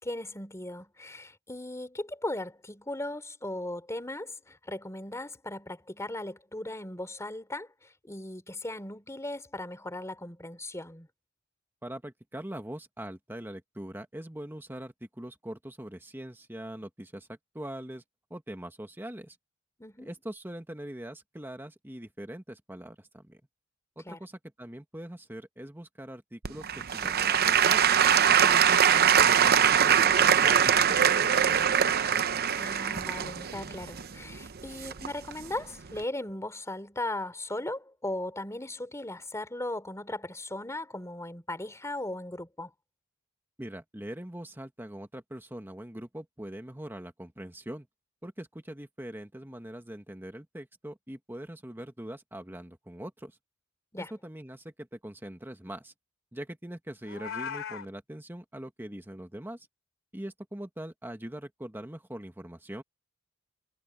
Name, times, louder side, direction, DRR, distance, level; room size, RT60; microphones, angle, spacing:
voice 1, 0.0-11.1 19.8-20.1 24.0-24.2 32.5-42.7 53.9-54.1, left 1 dB, 15° left, 3.3 m, -37 dB
voice 2, 11.8-18.0 18.3-19.4 20.0-23.4 24.0-27.8 28.4-31.7 43.6-47.9 48.2-53.4 54.1-55.9 56.3-59.7 60.1-62.8, right 1 dB, 10° right, 1.4 m, -42 dB
Applause / Crowd, 26.4-35.3 35.9-36.0, right 8 dB, 45° right, 0.8 m, -23 dB
Meow, 57.0-57.9, left 7 dB, 65° left, 3.2 m, -37 dB
head